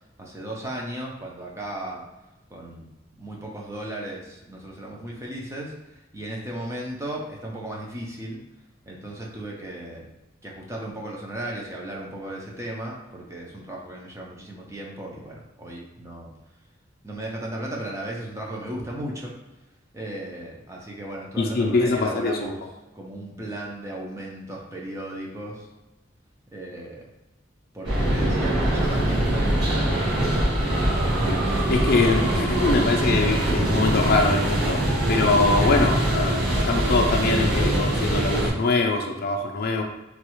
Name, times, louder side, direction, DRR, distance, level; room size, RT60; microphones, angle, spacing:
voice 1, 0.2-2.0 2.5-2.8 3.2-8.4 8.9-10.1 10.4-16.3 17.0-19.4 19.9-22.5 22.9-25.7 26.5-27.1 27.7-30.2, right 1 dB, 15° right, -2 dB, 0.6 m, -35 dB
voice 2, 21.4-22.5 31.7-34.8 35.1-39.8, left 3 dB, 50° left, 3 dB, 0.4 m, -23 dB
sound 1, 27.8-38.5, right 1 dB, 60° right, 1.3 m, -23 dB
3.1 x 2.4 x 3.0 m, 1.0 s
head